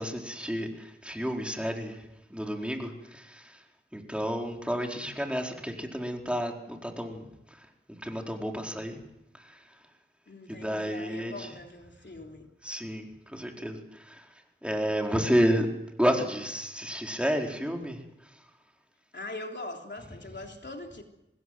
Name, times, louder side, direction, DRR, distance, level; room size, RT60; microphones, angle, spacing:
voice 1, 0.0-3.7 3.9-9.0 9.3-9.9 10.5-11.5 12.6-15.7 16.0-18.5, equal, 5° right, 4.4 m, -31 dB
voice 2, 10.3-12.5 19.1-21.0, left 2 dB, 60° left, 3.4 m, -42 dB
25.5 x 20.0 x 7.9 m
wide cardioid pair, 50°, 20 cm